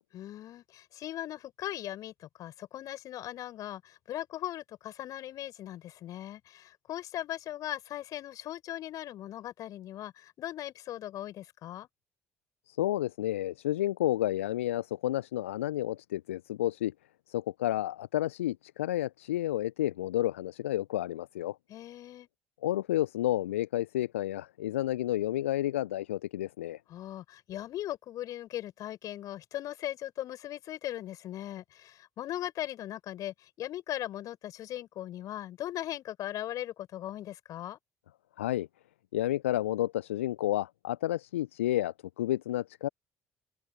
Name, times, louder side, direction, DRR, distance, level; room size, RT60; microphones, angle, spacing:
voice 1, 0.1-11.9 21.7-22.3 26.9-37.8, left 13 dB, 55° left, 7.2 m, -39 dB
voice 2, 12.7-16.9 17.3-21.6 22.6-26.8 38.4-38.7 39.1-42.9, left 14 dB, 75° left, 0.6 m, -31 dB
open air
figure-of-eight pair, 45°, 7 cm